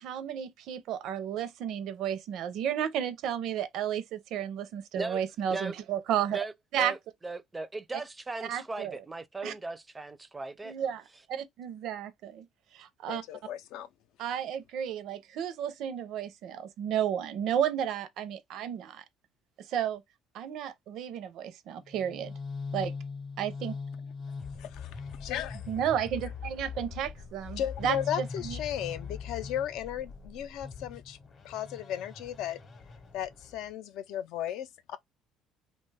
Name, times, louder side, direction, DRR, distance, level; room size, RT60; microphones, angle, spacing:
voice 1, 0.0-6.4 6.7-6.9 8.5-9.0 9.4-9.5 10.6-12.5 12.7-13.2 14.2-19.0 19.6-20.0 20.3-22.3 22.7-22.9 23.4-23.7 25.7-28.6, right 9 dB, 65° right, 0.5 m, -32 dB
voice 2, 6.3-7.0 7.2-10.8, right 3 dB, 15° right, 0.4 m, -37 dB
voice 3, 13.1-13.9 25.2-25.6 27.6-31.2 31.4-32.6 33.1-35.0, left 10 dB, 75° left, 0.4 m, -35 dB
sound 1, 21.8-33.7, left 5 dB, 30° left, 0.8 m, -41 dB
2.6 x 2.3 x 3.2 m
cardioid pair, 135°, 0 cm